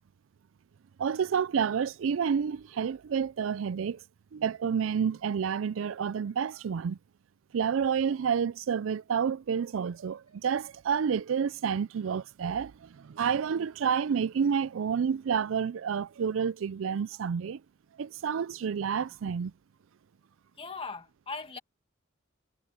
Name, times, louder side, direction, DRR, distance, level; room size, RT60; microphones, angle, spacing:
voice 1, 1.0-4.0 4.3-7.0 7.5-17.6 18.0-19.5, right 7 dB, 85° right, 0.4 m, -29 dB
voice 2, 20.6-21.6, left 4 dB, 30° left, 1.9 m, -39 dB
head